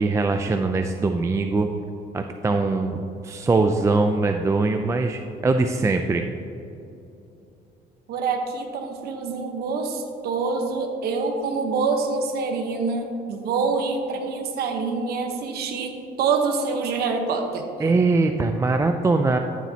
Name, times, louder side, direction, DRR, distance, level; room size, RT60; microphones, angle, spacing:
voice 1, 0.0-1.7 2.1-6.2 17.8-19.4, right 3 dB, 15° right, 5 dB, 0.4 m, -22 dB
voice 2, 8.1-17.6, right 4 dB, 70° right, 4 dB, 1.0 m, -26 dB
13.5 x 7.3 x 2.8 m, 2.8 s
cardioid pair, 110°, 17 cm